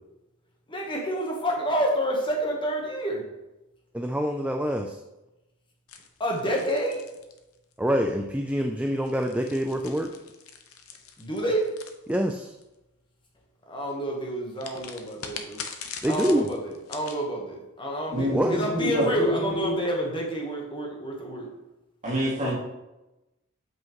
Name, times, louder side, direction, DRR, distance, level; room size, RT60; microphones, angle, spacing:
voice 1, 0.7-3.2 6.2-7.0 11.2-11.7 13.7-15.6 16.1-21.5, right 1 dB, 25° left, 0 dB, 1.1 m, -29 dB
voice 2, 3.9-5.0 7.8-10.1 12.1-12.5 16.0-16.5 18.3-18.6, equal, 5° right, 3 dB, 0.3 m, -26 dB
sound 1, 5.9-7.9 8.9-12.6 14.6-17.2, left 6 dB, 70° left, 0.7 m, -42 dB
voice 3, 18.1-19.7 22.0-22.6, equal, 35° right, -5 dB, 2.1 m, -26 dB
8.0 x 5.7 x 3.0 m, 0.99 s
head